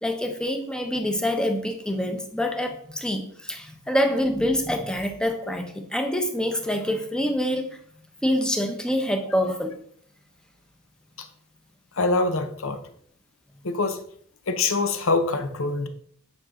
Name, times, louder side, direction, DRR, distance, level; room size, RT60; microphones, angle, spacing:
voice 1, 0.0-7.7 8.2-9.7, equal, 5° left, 5 dB, 0.9 m, -26 dB
voice 2, 11.9-12.8 13.6-14.0 14.5-15.9, left 3 dB, 65° left, 8 dB, 0.9 m, -24 dB
9.7 x 5.4 x 3.7 m, 0.62 s
head